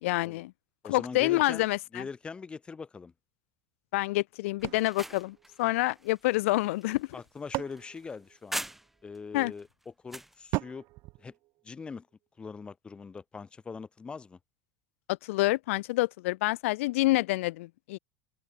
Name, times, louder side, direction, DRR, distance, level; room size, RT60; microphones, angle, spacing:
voice 1, 0.0-0.5 0.9-2.0 3.9-7.1 9.3-9.5 15.2-18.0, left 19 dB, 80° left, 0.8 m, -27 dB
voice 2, 0.8-1.7 1.9-3.1 7.1-8.6 9.0-10.8 11.2-11.3 11.6-12.1 12.4-14.4, left 5 dB, 15° left, 3.5 m, -42 dB
sound 1, 4.6-9.2 9.6-10.4, right 1 dB, 5° right, 6.2 m, -42 dB
sound 2, 4.6-6.2 7.0-9.0 10.5-12.1, right 21 dB, 45° right, 2.7 m, -39 dB
open air
supercardioid pair, 160°, 7 cm